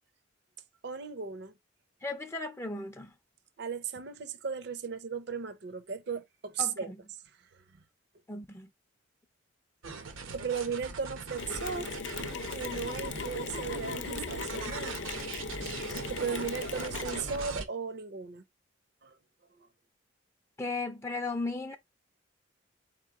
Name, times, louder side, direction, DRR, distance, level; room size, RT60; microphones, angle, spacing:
voice 1, 0.8-1.5 3.6-6.9 10.3-11.9 12.5-15.0 16.1-18.4 19.0-19.2, right 6 dB, 55° right, 0.6 m, -36 dB
voice 2, 2.0-3.1 6.6-7.0 8.3-8.7 20.6-21.8, left 3 dB, 15° left, 0.4 m, -36 dB
sound 1, 9.8-17.7, right 4 dB, 85° right, 0.9 m, -41 dB
Mechanisms, 11.4-17.6, left 4 dB, 60° left, 0.5 m, -38 dB
4.4 x 3.0 x 3.5 m
head